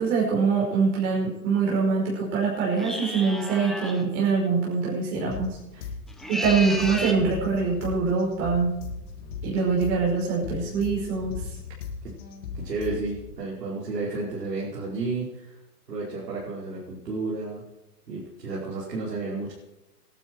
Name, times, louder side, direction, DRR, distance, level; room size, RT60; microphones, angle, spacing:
voice 1, 0.0-5.6 6.3-8.8 9.4-11.4, right 5 dB, 50° right, -4 dB, 5.4 m, -24 dB
sound 1, 2.8-4.0 6.1-7.2, equal, ahead, 1.0 m, -32 dB
sound 2, 5.3-13.3, left 5 dB, 60° left, 4.5 m, -37 dB
voice 2, 12.6-15.6 15.9-17.6 18.1-19.5, right 3 dB, 85° right, -6 dB, 5.2 m, -32 dB
18.0 x 12.0 x 4.7 m, 0.93 s
hypercardioid pair, 135°, 47 cm